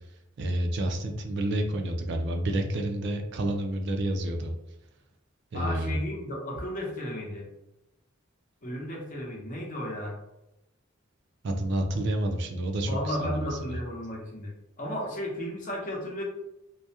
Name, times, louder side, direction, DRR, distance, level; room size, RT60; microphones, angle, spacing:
voice 1, 0.4-4.5 5.5-6.0 11.4-13.4, right 1 dB, 55° right, 4 dB, 0.4 m, -29 dB
voice 2, 5.5-7.5 8.6-10.2 12.9-14.5 14.8-16.2, equal, 40° left, -2 dB, 0.7 m, -34 dB
2.3 x 2.1 x 2.7 m, 0.91 s
head